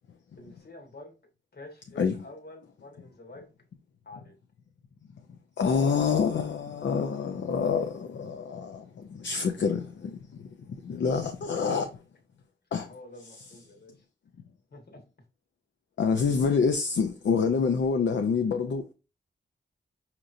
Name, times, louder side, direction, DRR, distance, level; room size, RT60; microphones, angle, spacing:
voice 1, 0.4-1.1 1.5-3.5 4.0-4.4 10.9-11.0 12.9-14.0 14.7-15.0, left 2 dB, 55° left, 1.3 m, -48 dB
voice 2, 5.6-12.0 12.7-12.9 16.0-18.9, left 5 dB, 75° left, 0.5 m, -27 dB
4.9 x 2.9 x 2.5 m
wide cardioid pair, 100°, 19 cm